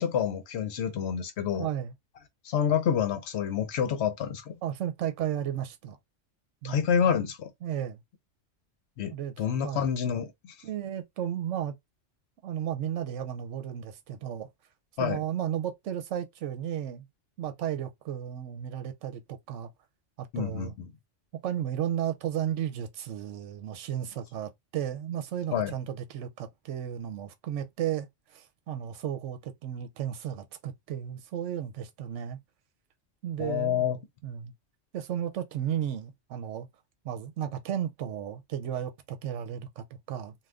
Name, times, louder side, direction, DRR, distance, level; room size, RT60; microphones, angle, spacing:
voice 1, 0.0-1.7 2.4-4.6 6.6-7.5 9.0-10.5 15.0-15.2 20.3-20.9 25.5-25.7 33.4-34.0, left 8 dB, 65° left, 0.8 m, -28 dB
voice 2, 1.6-1.9 4.6-6.0 6.6-6.8 7.6-8.0 9.1-9.3 9.6-9.8 10.6-11.7 12.4-14.5 15.0-17.1 17.4-19.7 20.2-20.7 21.4-32.4 33.2-33.8 34.2-34.5 34.9-36.7 37.0-40.3, right 10 dB, 75° right, 1.0 m, -34 dB
2.5 x 2.4 x 3.4 m
omnidirectional pair, 1.3 m